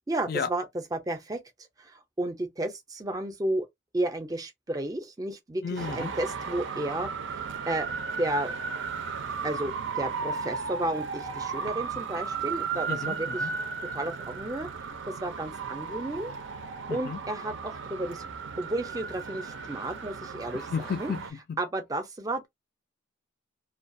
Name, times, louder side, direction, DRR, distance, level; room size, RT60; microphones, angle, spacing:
voice 1, 0.1-0.6 0.9-1.4 1.8-3.7 3.9-5.6 5.9-7.1 7.7-7.9 8.2-8.5 9.4-13.4 13.9-14.7 15.1-16.3 16.9-18.2 18.6-20.6 21.0-21.1 21.6-22.5, right 1 dB, 20° right, 0.5 m, -32 dB
voice 2, 5.6-6.1 12.9-13.5 16.9-17.2 20.5-21.6, left 6 dB, 50° left, 0.4 m, -33 dB
Traffic noise roadway noise, 5.8-21.3, right 5 dB, 75° right, 0.5 m, -35 dB
2.3 x 2.2 x 2.5 m
head